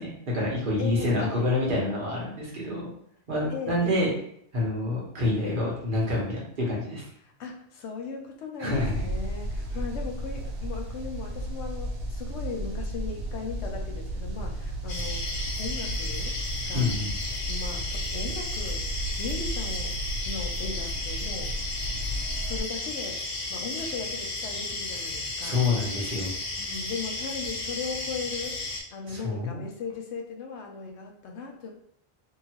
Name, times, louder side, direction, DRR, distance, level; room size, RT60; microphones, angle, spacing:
voice 1, 0.0-2.9 3.3-4.1 4.5-7.1 8.6-9.0 16.7-17.1 25.4-26.3 29.1-29.6, left 2 dB, 50° right, -4 dB, 1.2 m, -27 dB
voice 2, 0.8-1.5 3.5-4.1 7.2-16.9 17.5-21.5 22.1-23.2 23.5-25.7 26.6-28.6 28.9-31.7, left 5 dB, 85° left, 3 dB, 0.9 m, -38 dB
sound 1, 8.7-22.6, right 1 dB, 85° right, 0.9 m, -33 dB
sound 2, 14.9-28.8, left 2 dB, 55° left, 0.8 m, -34 dB
2.8 x 2.8 x 2.8 m, 0.70 s
omnidirectional pair, 1.1 m